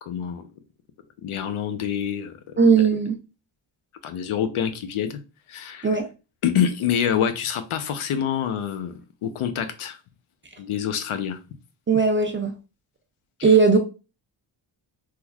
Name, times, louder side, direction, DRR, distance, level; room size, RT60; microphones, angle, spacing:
voice 1, 0.0-0.4 1.2-2.3 4.0-5.2 5.5-5.9 6.4-8.9 9.2-10.0 10.6-11.4, left 8 dB, 80° left, 0.7 m, -26 dB
voice 2, 2.6-3.2 5.8-6.1 11.9-12.5 13.4-13.8, right 5 dB, 25° right, 0.3 m, -18 dB
3.7 x 3.0 x 2.3 m
wide cardioid pair, 155°, 49 cm